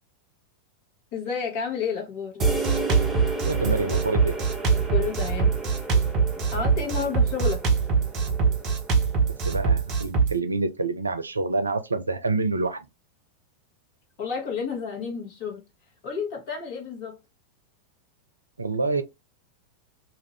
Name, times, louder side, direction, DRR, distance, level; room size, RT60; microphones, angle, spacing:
voice 1, 1.1-2.8 4.9-5.9 6.5-7.6 14.2-15.6 16.0-17.2, left 6 dB, 45° left, 1.4 m, -31 dB
sound 1, 2.4-9.9, right 1 dB, 5° right, 0.8 m, -34 dB
Drum kit, 2.4-10.3, right 5 dB, 35° right, 1.0 m, -23 dB
voice 2, 3.4-4.3 9.5-12.9 18.6-19.0, right 3 dB, 80° right, 0.4 m, -27 dB
2.7 x 2.5 x 3.0 m
figure-of-eight pair, 90°, 0 cm